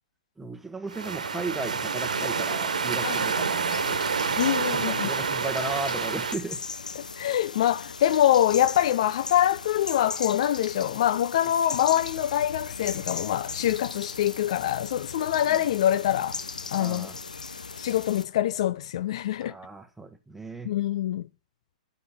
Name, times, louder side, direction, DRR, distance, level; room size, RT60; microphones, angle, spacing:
voice 1, 0.4-4.0 4.3-6.6 15.4-15.6 16.8-17.2 19.4-20.7, right 3 dB, 5° right, 1.5 m, -36 dB
sound 1, 0.9-6.4, right 5 dB, 70° right, 1.4 m, -28 dB
voice 2, 3.0-3.3 4.4-5.1 7.0-16.4 16.7-17.1 17.8-19.5 20.6-21.3, left 12 dB, 50° left, 0.6 m, -25 dB
sound 2, 3.7-18.3, left 4 dB, 75° left, 1.0 m, -38 dB
11.5 x 7.2 x 7.5 m
figure-of-eight pair, 110°, 4 cm